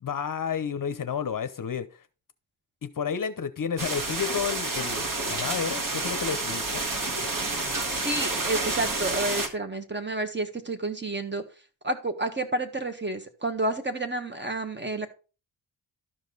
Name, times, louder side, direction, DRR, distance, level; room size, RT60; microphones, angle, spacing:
voice 1, 0.0-1.9 2.8-6.8, left 7 dB, 45° left, 0.8 m, -31 dB
sound 1, 3.8-9.5, right 2 dB, 45° right, 1.8 m, -29 dB
sound 2, 6.3-7.9, right 2 dB, 60° right, 3.8 m, -48 dB
voice 2, 7.9-11.4 11.8-15.1, right 2 dB, 25° right, 1.4 m, -30 dB
12.5 x 5.2 x 3.9 m
cardioid pair, 90°, 44 cm